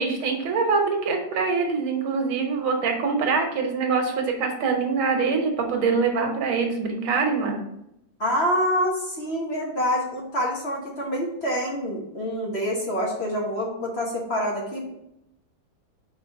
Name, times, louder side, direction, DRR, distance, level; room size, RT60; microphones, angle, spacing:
voice 1, 0.0-7.6, right 4 dB, 90° right, 3 dB, 1.9 m, -24 dB
voice 2, 8.2-15.0, equal, 40° left, -2 dB, 1.1 m, -26 dB
4.7 x 4.3 x 5.2 m, 0.80 s
omnidirectional pair, 2.2 m